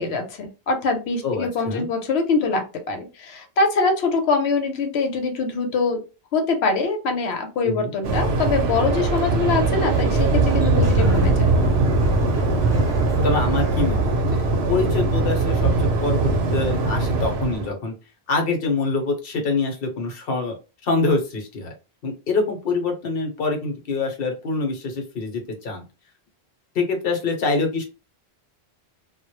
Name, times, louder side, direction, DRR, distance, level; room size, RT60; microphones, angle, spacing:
voice 1, 0.0-6.0 6.3-11.5, left 4 dB, 85° left, 5 dB, 0.9 m, -23 dB
voice 2, 1.2-1.9 7.6-7.9 13.2-17.9 18.3-20.6 20.8-21.7 22.0-25.8 26.7-27.8, left 3 dB, 65° left, 3 dB, 0.9 m, -25 dB
Waves surf, 8.0-17.7, right 3 dB, 80° right, 0.8 m, -21 dB
Sliding door, 9.6-14.8, equal, 20° right, 0.5 m, -33 dB
2.1 x 2.0 x 2.9 m, 0.30 s
omnidirectional pair, 1.1 m